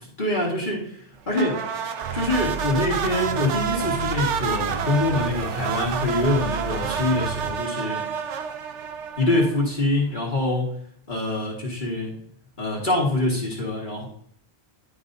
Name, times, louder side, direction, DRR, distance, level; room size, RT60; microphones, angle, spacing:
voice 1, 0.2-0.8 1.3-1.6 2.1-8.1 9.2-10.7 11.1-12.1 12.6-14.1, left 2 dB, 45° left, -3 dB, 1.9 m, -24 dB
sound 1, 1.3-9.8, right 7 dB, 80° right, 1.0 m, -29 dB
sound 2, 2.0-7.5, right 8 dB, 60° right, 0.6 m, -33 dB
11.0 x 5.2 x 2.7 m, 0.64 s
omnidirectional pair, 1.2 m